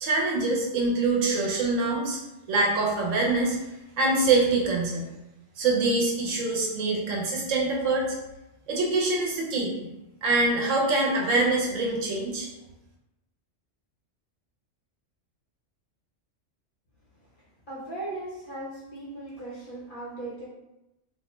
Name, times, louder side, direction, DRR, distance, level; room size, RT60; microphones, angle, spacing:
voice 1, 0.0-2.2 2.5-3.6 4.0-5.1 5.6-8.2 8.7-9.9 10.2-12.5, right 3 dB, 80° right, -1 dB, 1.0 m, -24 dB
voice 2, 17.7-20.5, right 2 dB, 50° left, -6 dB, 0.8 m, -38 dB
2.4 x 2.2 x 2.9 m, 0.94 s
omnidirectional pair, 1.3 m